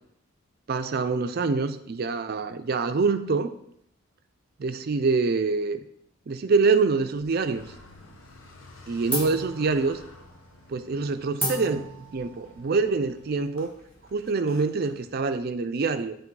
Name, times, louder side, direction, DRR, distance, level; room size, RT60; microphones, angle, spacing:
voice 1, 0.7-3.5 4.6-5.8 6.3-7.7 8.9-10.0 10.7-13.7 14.1-16.2, right 4 dB, 50° right, 10 dB, 0.4 m, -25 dB
sound 1, 7.1-8.0 8.3-8.7 9.1-14.3, equal, 10° left, 1.6 m, -36 dB
Car, 7.3-15.5, left 2 dB, 70° left, 0.9 m, -52 dB
7.3 x 3.1 x 4.7 m, 0.73 s
head